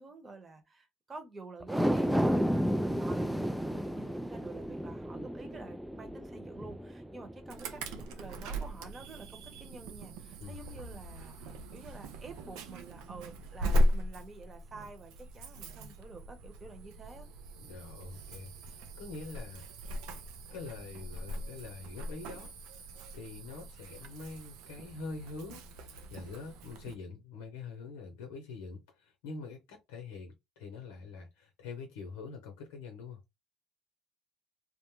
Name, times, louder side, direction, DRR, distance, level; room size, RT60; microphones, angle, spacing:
voice 1, 0.0-7.8 8.2-17.3, right 3 dB, 25° right, 0.9 m, -49 dB
sound 1, 1.6-8.1 8.5-8.6, equal, ahead, 0.3 m, -32 dB
Insect / Alarm, 7.5-26.9, equal, 80° right, 0.5 m, -38 dB
voice 2, 17.6-19.7 20.5-22.5 23.1-33.2, left 4 dB, 90° left, 0.7 m, -45 dB
2.4 x 2.0 x 3.1 m
supercardioid pair, 80°, 0 cm